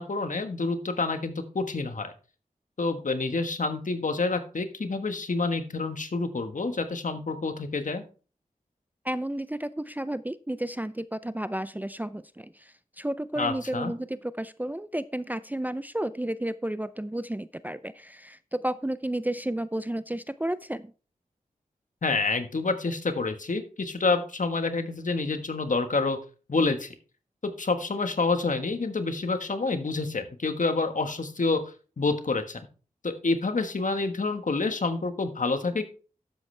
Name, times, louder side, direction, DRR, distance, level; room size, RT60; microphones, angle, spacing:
voice 1, 0.0-2.1 2.8-8.0 13.4-13.9 22.0-26.2 26.5-26.9 27.4-32.6 33.0-35.8, left 3 dB, 60° left, 8 dB, 1.5 m, -28 dB
voice 2, 9.0-20.9, right 1 dB, 10° right, 14 dB, 0.5 m, -32 dB
12.0 x 8.0 x 3.3 m, 0.37 s
cardioid pair, 50°, 15 cm